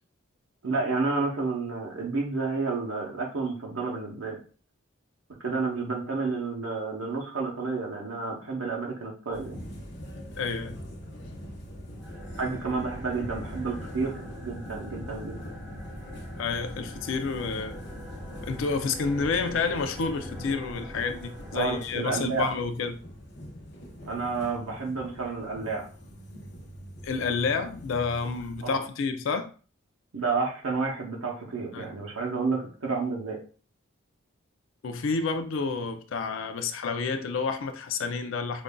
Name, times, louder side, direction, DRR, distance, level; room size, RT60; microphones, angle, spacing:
voice 1, 0.6-4.4 5.4-9.6 12.4-15.4 21.5-22.5 24.1-25.9 28.6-28.8 30.1-33.4, right 4 dB, 80° right, 0.8 m, -30 dB
sound 1, 9.3-28.8, equal, 50° left, 0.8 m, -43 dB
voice 2, 10.4-10.8 16.4-17.8 18.4-23.0 27.0-29.5 31.7-31.9 34.8-38.6, left 4 dB, 65° left, 0.4 m, -29 dB
sound 2, 11.9-22.4, equal, 5° right, 0.9 m, -43 dB
5.1 x 2.5 x 2.2 m
head